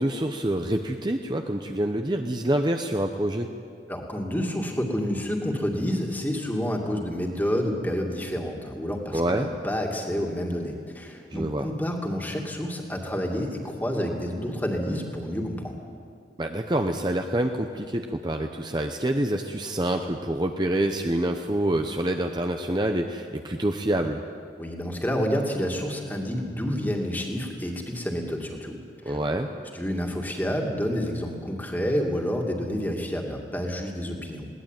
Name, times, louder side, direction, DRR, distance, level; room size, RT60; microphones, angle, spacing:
voice 1, 0.0-3.5 9.1-9.5 11.3-11.7 16.4-24.2 29.0-29.5, right 1 dB, 25° right, 4 dB, 0.8 m, -26 dB
voice 2, 3.9-15.8 24.6-28.8 29.1-29.2 29.7-34.5, equal, 10° left, 1 dB, 2.4 m, -29 dB
21.0 x 18.0 x 9.3 m, 2.3 s
head